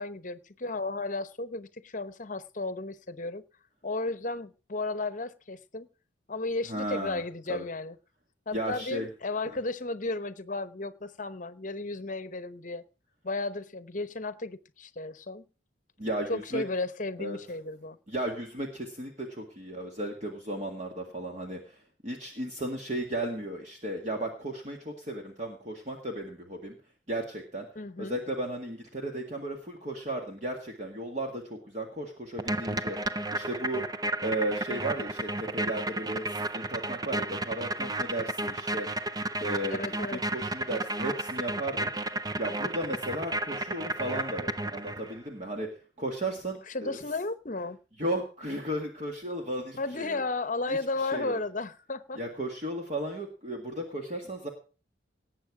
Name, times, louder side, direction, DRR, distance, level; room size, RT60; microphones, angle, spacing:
voice 1, 0.0-3.4 3.8-5.9 6.3-8.0 8.5-12.8 13.2-15.4 16.3-18.0 27.7-28.2 39.7-40.2 46.7-47.8 49.8-52.2, left 3 dB, 40° left, 0.9 m, -34 dB
voice 2, 6.7-7.2 7.5-7.6 8.5-9.1 16.0-16.6 17.2-17.4 18.1-26.7 27.1-27.7 28.0-33.8 34.2-39.1 39.4-45.7 46.0-47.0 48.0-50.2 50.7-51.4 52.2-54.5, right 1 dB, 40° right, 1.9 m, -35 dB
sound 1, 32.4-45.2, right 1 dB, 20° right, 0.5 m, -33 dB
18.5 x 8.1 x 4.8 m
head